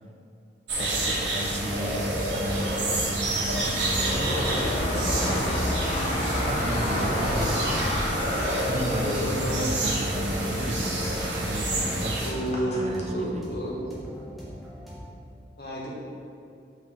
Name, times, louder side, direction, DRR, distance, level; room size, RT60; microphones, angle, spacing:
sound 1, 0.7-12.3, right 1 dB, 85° right, 1.4 m, -29 dB
voice 1, 0.8-4.4 4.9-5.7 6.5-7.6 8.5-12.2 12.6-13.5, right 1 dB, 35° right, 2 dB, 0.5 m, -33 dB
sound 2, 1.8-13.1, left 1 dB, 40° left, 0.9 m, -31 dB
sound 3, 5.6-15.1, equal, ahead, 1.0 m, -42 dB
voice 2, 9.0-9.6 12.2-13.8 15.6-15.9, equal, 60° left, -4 dB, 1.3 m, -31 dB
5.8 x 4.5 x 3.7 m, 2.6 s
head